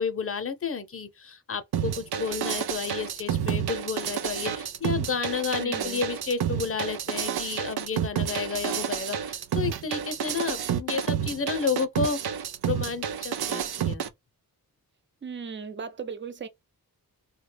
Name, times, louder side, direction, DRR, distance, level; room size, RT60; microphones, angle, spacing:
voice 1, 0.0-12.2 12.6-14.0, left 5 dB, 35° left, 0.6 m, -31 dB
sound 1, 1.7-14.1, right 9 dB, 85° right, 0.5 m, -30 dB
voice 2, 5.6-6.0 15.2-16.5, right 6 dB, 30° right, 0.5 m, -37 dB
3.6 x 2.2 x 3.2 m
wide cardioid pair, 90°, 37 cm